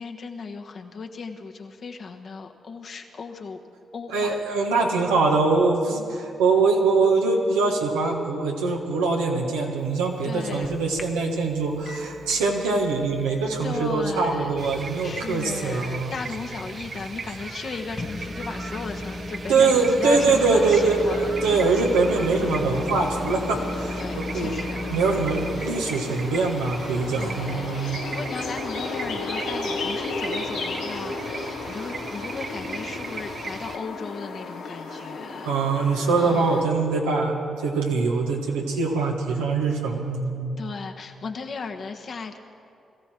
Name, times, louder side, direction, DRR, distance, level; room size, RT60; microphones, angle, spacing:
voice 1, 0.0-3.6 3.9-4.3 10.2-10.7 13.6-14.6 15.0-21.6 22.1-22.3 24.0-24.8 25.4-25.5 27.1-35.5 36.2-36.6 40.6-42.4, left 4 dB, 60° left, 4 dB, 1.3 m, -36 dB
voice 2, 4.1-16.1 19.5-24.6 24.9-28.0 35.4-40.6, right 4 dB, 90° right, 0 dB, 1.5 m, -23 dB
Microwave oven, 9.8-29.1, left 2 dB, 45° left, 1.2 m, -38 dB
sound 1, 14.5-33.8, right 4 dB, 55° right, 0.8 m, -38 dB
sound 2, 20.1-36.6, left 3 dB, 85° left, 1.6 m, -34 dB
21.5 x 14.5 x 4.5 m, 2.6 s
hypercardioid pair, 40°, 0 cm